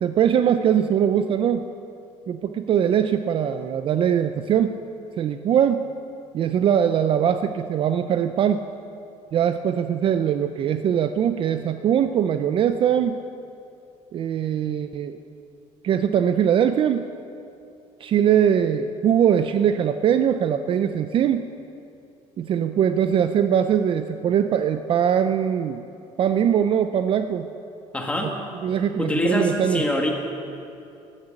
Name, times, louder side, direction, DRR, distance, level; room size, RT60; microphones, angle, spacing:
voice 1, 0.0-1.6 2.3-4.8 5.2-5.8 6.3-8.6 9.3-13.2 14.1-15.2 15.8-17.1 18.0-21.5 22.4-25.8 26.2-27.5 28.2-28.3 28.6-29.8, right 9 dB, 40° right, 9 dB, 0.5 m, -21 dB
voice 2, 27.9-28.3 29.0-30.1, left 1 dB, 10° left, 1 dB, 1.8 m, -24 dB
14.0 x 11.0 x 7.7 m, 2.6 s
cardioid pair, 150°, 13 cm